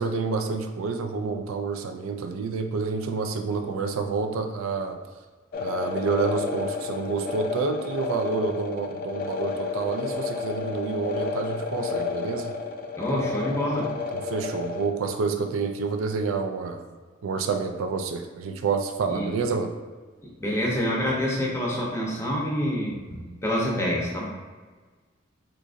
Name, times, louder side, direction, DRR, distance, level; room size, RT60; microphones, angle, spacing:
voice 1, 0.0-5.0 5.6-12.5 14.1-16.8 17.2-19.7, right 4 dB, 90° right, 6 dB, 0.3 m, -28 dB
sound 1, 5.5-14.9, left 4 dB, 45° left, 0.3 m, -31 dB
voice 2, 13.0-13.9 19.1-19.3 20.4-24.2, equal, 15° left, -3 dB, 0.6 m, -27 dB
3.7 x 2.8 x 2.4 m, 1.4 s
head